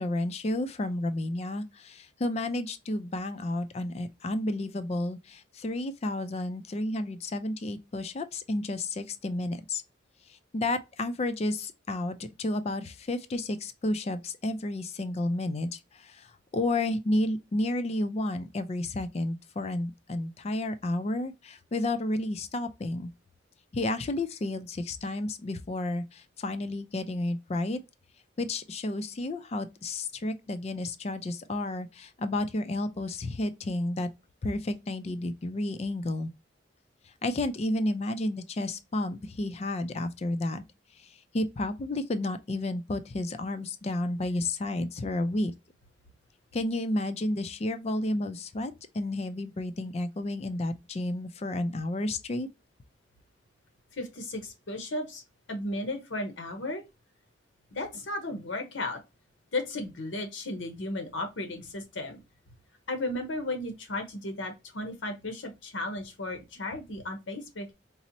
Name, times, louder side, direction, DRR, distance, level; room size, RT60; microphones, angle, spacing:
voice 1, 0.0-9.8 10.5-16.3 16.5-23.1 23.7-27.8 28.4-34.1 34.4-36.3 37.2-40.6 41.0-45.5 46.5-52.5, left 1 dB, 35° left, 0.4 m, -31 dB
voice 2, 53.9-55.2 55.5-56.8 57.7-59.0 59.5-62.2 62.9-67.7, left 2 dB, 85° left, 0.8 m, -35 dB
4.1 x 2.0 x 2.6 m
head